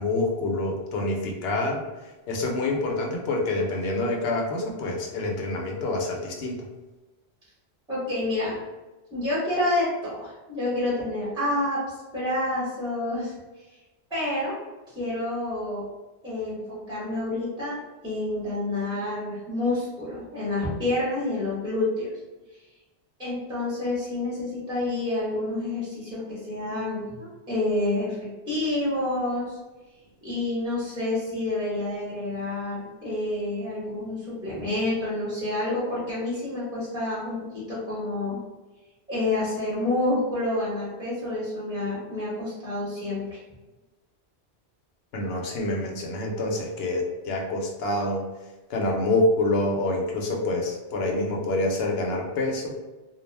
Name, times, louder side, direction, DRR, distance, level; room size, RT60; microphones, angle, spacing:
voice 1, 0.0-1.8 2.3-6.6 45.1-48.2 48.7-52.7, left 2 dB, 70° left, 0 dB, 0.8 m, -26 dB
voice 2, 7.9-8.6 9.1-13.3 14.1-14.6 14.9-15.8 16.2-17.8 18.0-22.1 23.2-29.6 30.2-38.4 39.1-43.4, left 2 dB, 5° right, -9 dB, 0.9 m, -28 dB
2.3 x 2.1 x 3.2 m, 1.1 s
omnidirectional pair, 1.1 m